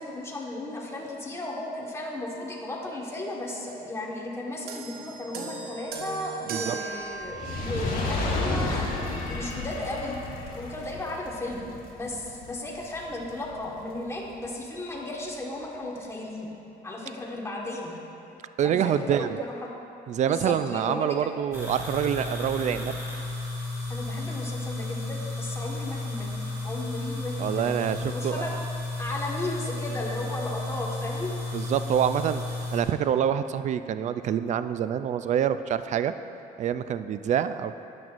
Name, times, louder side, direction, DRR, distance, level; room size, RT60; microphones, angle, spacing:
voice 1, 0.0-10.2 10.5-16.5 16.8-18.0 18.6-19.7 20.3-21.3 23.9-26.3 26.6-28.5 29.0-31.3, left 1 dB, 15° left, -2 dB, 1.5 m, -35 dB
sound 1, 4.7-8.3 9.2-9.3, right 5 dB, 65° right, 1.0 m, -38 dB
Fire, 7.2-13.6 14.3-14.4, left 2 dB, 60° left, 1.6 m, -32 dB
voice 2, 18.6-19.4 20.1-23.0 27.4-28.5 31.5-36.1 36.6-37.8, right 9 dB, 45° right, 11 dB, 0.4 m, -26 dB
sound 2, 21.5-32.8, left 2 dB, 15° right, 1.8 m, -33 dB
12.5 x 8.8 x 2.5 m, 2.9 s
cardioid pair, 110°, 17 cm